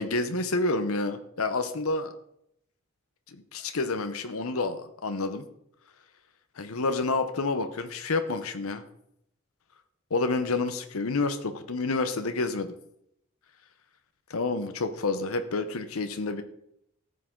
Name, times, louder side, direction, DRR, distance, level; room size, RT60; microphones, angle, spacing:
voice 1, 0.0-2.1 3.3-5.5 6.6-8.8 10.1-12.8 14.3-16.4, left 3 dB, 80° left, 8 dB, 0.8 m, -29 dB
14.0 x 8.4 x 3.8 m, 0.76 s
head